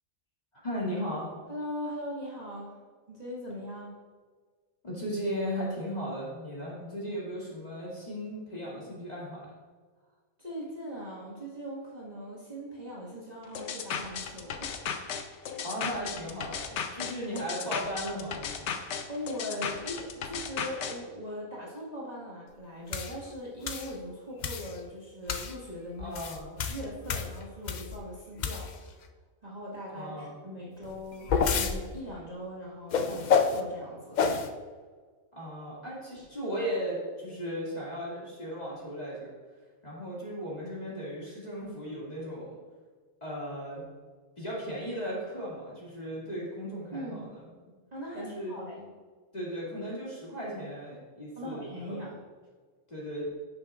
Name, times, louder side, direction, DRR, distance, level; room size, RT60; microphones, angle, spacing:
voice 1, 0.6-1.3 4.8-9.4 15.6-18.8 26.0-26.5 29.9-30.4 35.3-39.3 39.8-42.5 43.2-43.8 44.4-47.5 48.1-48.6 49.3-52.0 52.9-53.3, equal, 30° left, -7 dB, 2.4 m, -36 dB
voice 2, 1.5-2.8 3.1-3.9 10.4-15.0 19.1-26.2 26.7-28.9 29.4-34.2 46.9-47.3 47.9-48.9 51.4-52.2, equal, 30° right, -7 dB, 1.7 m, -40 dB
sound 1, 13.6-21.0, left 7 dB, 65° left, 0.9 m, -35 dB
sound 2, 22.9-23.1 23.7-23.9 24.4-24.7 25.3-25.5 26.0-28.0 28.4-28.9 30.8-31.8 32.9-33.6 34.2-34.5, left 6 dB, 80° left, 0.4 m, -28 dB
10.5 x 6.9 x 2.4 m, 1.5 s
omnidirectional pair, 1.4 m